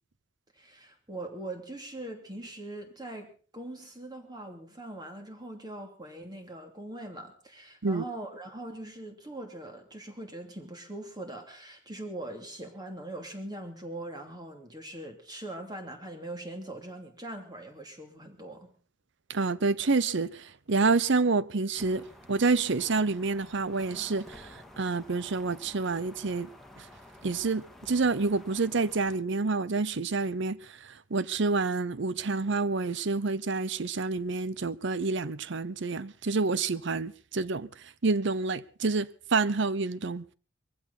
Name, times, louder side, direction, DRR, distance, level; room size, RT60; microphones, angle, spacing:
voice 1, 0.5-18.7, right 1 dB, 20° right, 2.8 m, -41 dB
voice 2, 19.3-26.5 27.2-30.6 31.1-37.7 38.0-40.2, right 3 dB, 65° right, 0.8 m, -28 dB
sound 1, 21.7-29.2, left 1 dB, ahead, 2.1 m, -51 dB
22.0 x 15.5 x 4.2 m
head